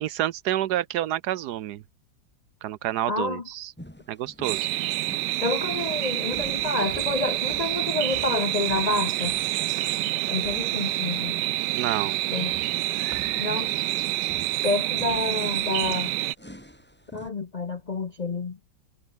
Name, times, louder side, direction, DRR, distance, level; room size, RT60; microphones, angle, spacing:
voice 1, 0.0-1.8 2.6-3.7 4.1-4.7 11.7-12.2, right 13 dB, 75° right, 1.2 m, -28 dB
voice 2, 3.1-3.4 5.4-9.4 10.3-11.3 12.3-12.5 13.3-13.7 14.6-16.1 17.1-18.6, left 3 dB, 45° left, 0.5 m, -28 dB
sound 1, 3.8-17.3, equal, 5° left, 5.3 m, -48 dB
sound 2, 4.4-16.3, right 16 dB, 90° right, 1.2 m, -27 dB
omnidirectional pair, 1.8 m